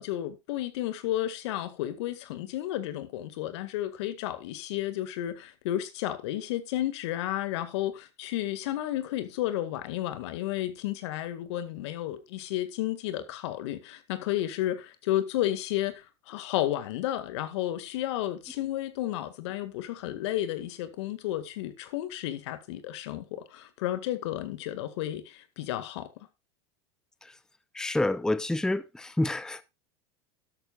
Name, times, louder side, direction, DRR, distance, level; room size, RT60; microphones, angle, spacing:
voice 1, 0.0-26.1, left 13 dB, 75° left, 2.0 m, -32 dB
voice 2, 27.8-29.6, left 2 dB, 5° left, 0.7 m, -28 dB
13.0 x 12.5 x 2.5 m
supercardioid pair, 110°, 15 cm